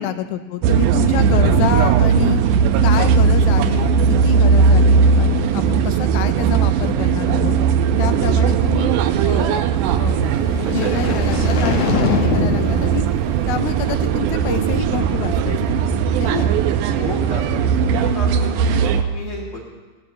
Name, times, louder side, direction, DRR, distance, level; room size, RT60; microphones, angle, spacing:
voice 1, 0.0-2.4 2.8-3.9 4.2-7.6 8.0-9.7 10.0-10.3 10.7-13.1 13.5-15.8 16.2-16.5, left 10 dB, 90° left, 10 dB, 2.5 m, -27 dB
sound 1, 0.6-19.0, right 6 dB, 80° right, 1.9 m, -18 dB
sound 2, 10.0-14.3, left 4 dB, 60° left, 1.8 m, -24 dB
voice 2, 10.8-11.2 16.2-16.4 17.0-19.7, left 4 dB, 45° left, -5 dB, 2.7 m, -32 dB
17.5 x 13.5 x 3.2 m, 1.3 s
omnidirectional pair, 4.1 m